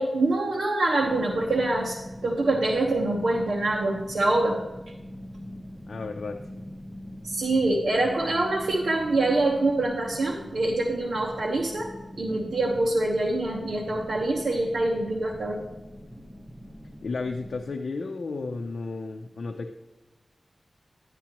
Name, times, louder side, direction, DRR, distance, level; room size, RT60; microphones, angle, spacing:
voice 1, 0.0-2.0 2.2-4.6 7.2-11.9 12.2-15.6, right 2 dB, 85° right, -2 dB, 1.1 m, -25 dB
sound 1, 1.0-17.6, equal, 5° right, 1.2 m, -42 dB
voice 2, 5.9-6.4 17.0-19.7, left 3 dB, 80° left, 2 dB, 0.6 m, -33 dB
11.0 x 9.9 x 3.0 m, 1.1 s
wide cardioid pair, 85°, 0 cm